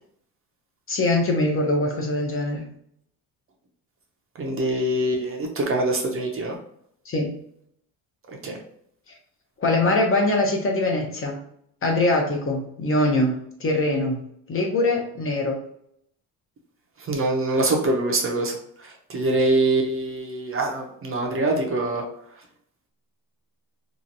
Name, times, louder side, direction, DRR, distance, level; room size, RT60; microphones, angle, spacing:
voice 1, 0.9-2.7 7.1-7.4 9.6-11.4 11.8-15.6, left 2 dB, 35° left, 1 dB, 0.7 m, -23 dB
voice 2, 4.4-6.6 8.4-8.6 17.1-18.5 19.1-22.0, right 2 dB, 35° right, 1 dB, 0.6 m, -24 dB
2.9 x 2.4 x 2.6 m, 0.68 s
cardioid pair, 115°, 38 cm